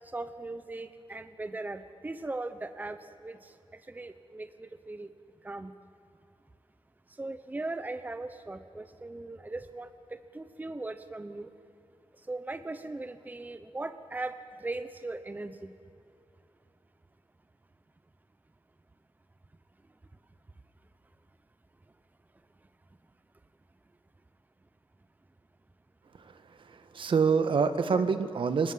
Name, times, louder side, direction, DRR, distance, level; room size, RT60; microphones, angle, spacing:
voice 1, 0.0-5.1 5.4-5.7 7.1-11.5 12.1-15.7, right 2 dB, 20° right, 11 dB, 1.0 m, -39 dB
voice 2, 26.2-28.7, right 5 dB, 65° right, 10 dB, 1.8 m, -27 dB
29.5 x 26.5 x 7.6 m, 2.7 s
wide cardioid pair, 140°, 9 cm